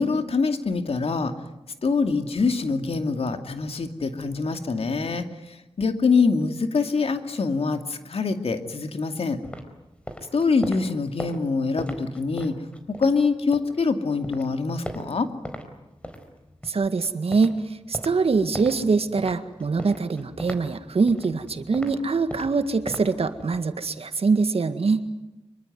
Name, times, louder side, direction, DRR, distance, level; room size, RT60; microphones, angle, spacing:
voice 1, 0.0-1.3 1.8-9.4 10.3-12.6 13.0-15.3, left 4 dB, 70° left, 7 dB, 2.5 m, -24 dB
sound 1, 9.4-13.8 14.2-15.7 16.0-23.7, equal, 10° left, 4.3 m, -40 dB
voice 2, 16.7-17.6 17.9-25.1, right 4 dB, 70° right, 10 dB, 1.9 m, -23 dB
25.5 x 23.5 x 9.4 m, 0.96 s
wide cardioid pair, 85°, 11 cm